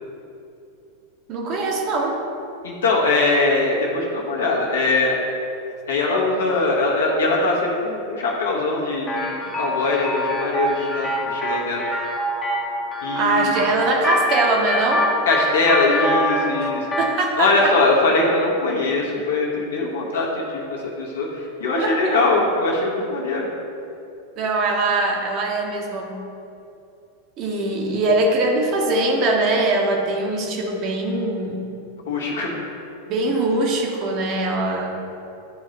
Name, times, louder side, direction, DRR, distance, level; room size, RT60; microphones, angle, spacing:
voice 1, 1.3-2.2 13.1-15.1 16.6-16.7 17.0-17.7 21.8-22.2 24.4-26.1 27.4-31.7 33.1-35.0, right 2 dB, 40° right, 0 dB, 1.0 m, -22 dB
voice 2, 2.6-5.2 5.9-11.8 13.0-13.6 15.3-16.8 17.4-23.5 32.1-32.6, left 3 dB, 65° left, -3 dB, 1.3 m, -21 dB
sound 1, 9.1-17.2, equal, 15° left, 0.9 m, -25 dB
11.0 x 3.7 x 3.2 m, 2.7 s
figure-of-eight pair, 90°, 0 cm